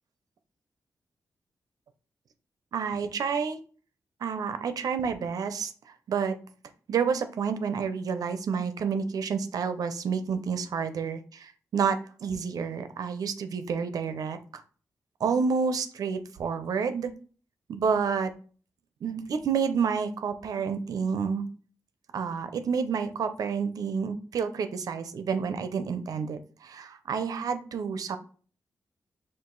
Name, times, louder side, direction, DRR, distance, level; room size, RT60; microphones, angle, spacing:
voice 1, 2.7-3.6 4.2-6.4 6.9-14.6 15.2-17.1 17.7-18.3 19.0-21.5 22.1-28.2, right 6 dB, 75° right, 9 dB, 0.5 m, -29 dB
4.7 x 2.4 x 3.8 m, 0.40 s
wide cardioid pair, 105°, 6 cm